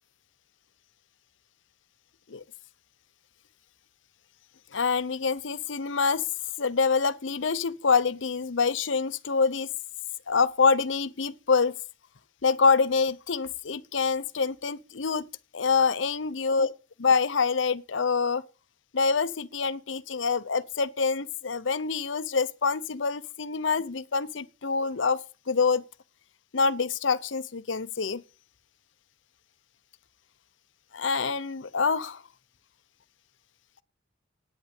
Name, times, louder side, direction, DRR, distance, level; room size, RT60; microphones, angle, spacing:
voice 1, 4.7-6.2 6.6-9.7 10.3-11.7 12.4-15.2 15.5-16.7 17.0-18.4 18.9-25.2 25.5-25.8 26.5-28.2 30.9-32.2, left 5 dB, 80° left, 0.8 m, -26 dB
11.0 x 9.4 x 8.1 m
head